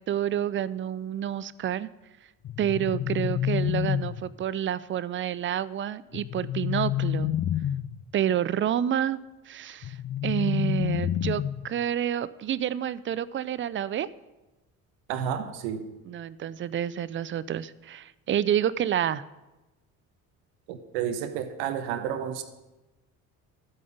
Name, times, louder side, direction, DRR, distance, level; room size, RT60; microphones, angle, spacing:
voice 1, 0.0-1.9 2.6-7.3 8.1-9.2 9.5-9.9 10.2-14.1 16.1-19.2, right 10 dB, 30° right, 18 dB, 0.5 m, -29 dB
sound 1, 2.4-4.4 6.1-8.0 9.8-11.8, left 10 dB, 30° left, 0.5 m, -29 dB
voice 2, 15.1-15.9 20.7-22.4, right 9 dB, 65° right, 9 dB, 1.1 m, -31 dB
12.0 x 8.5 x 5.1 m, 1.0 s
figure-of-eight pair, 50°, 43 cm